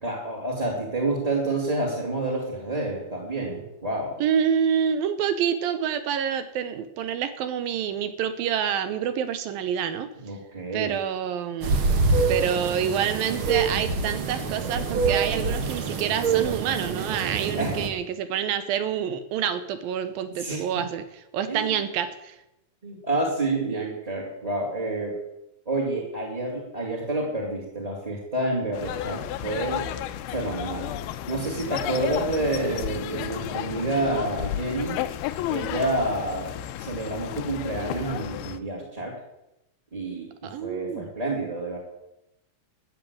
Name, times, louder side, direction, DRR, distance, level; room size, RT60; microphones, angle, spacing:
voice 1, 0.0-4.1 10.2-11.0 17.5-17.8 20.4-20.6 21.5-21.8 22.8-25.2 25.6-29.9 30.3-30.9 31.3-35.0 35.5-39.2 39.9-41.8, right 2 dB, 10° right, -2 dB, 2.3 m, -29 dB
voice 2, 4.2-10.1 10.7-11.9 12.3-21.0 21.3-22.4 40.4-41.1, right 8 dB, 75° right, 11 dB, 2.7 m, -27 dB
sound 1, 11.6-17.9, right 4 dB, 55° right, 1.5 m, -26 dB
sound 2, 28.7-38.6, left 12 dB, 85° left, 2.6 m, -32 dB
13.5 x 8.4 x 8.7 m, 0.89 s
omnidirectional pair, 4.4 m